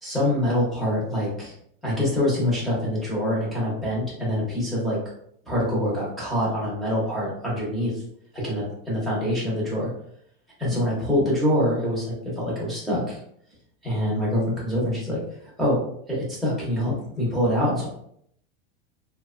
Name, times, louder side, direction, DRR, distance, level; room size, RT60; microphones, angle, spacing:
voice 1, 0.0-1.6 1.8-5.0 5.5-8.0 8.3-9.9 10.6-13.2 13.8-15.8 16.1-17.9, left 1 dB, ahead, -8 dB, 0.5 m, -25 dB
2.7 x 2.1 x 2.3 m, 0.68 s
supercardioid pair, 175°, 30 cm